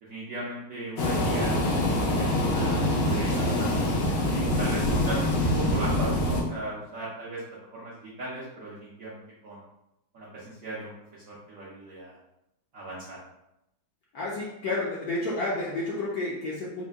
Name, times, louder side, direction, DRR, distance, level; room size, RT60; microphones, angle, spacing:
voice 1, 0.0-1.6 2.0-3.9 4.3-5.3 5.5-9.6 10.1-12.2 12.7-13.2, right 2 dB, 70° right, -6 dB, 0.8 m, -38 dB
sound 1, 1.0-6.4, left 1 dB, 90° left, 1.7 m, -25 dB
voice 2, 14.1-16.8, left 2 dB, 70° left, -5 dB, 0.9 m, -30 dB
4.3 x 2.2 x 3.4 m, 0.87 s
omnidirectional pair, 2.2 m